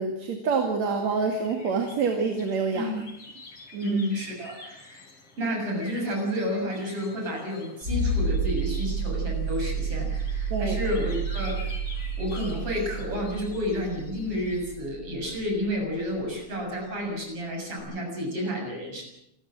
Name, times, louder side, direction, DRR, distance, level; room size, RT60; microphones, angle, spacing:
voice 1, 0.0-2.9 3.7-4.0 10.5-10.8, right 4 dB, 65° right, 4 dB, 3.4 m, -27 dB
sound 1, 0.9-14.8, left 3 dB, 50° left, 5.3 m, -48 dB
voice 2, 3.8-5.1 5.4-19.0, equal, 50° right, 1 dB, 8.0 m, -31 dB
sound 2, 7.8-16.3 17.8-17.9, right 3 dB, 30° right, 6.7 m, -30 dB
28.0 x 14.5 x 7.6 m, 0.79 s
omnidirectional pair, 3.3 m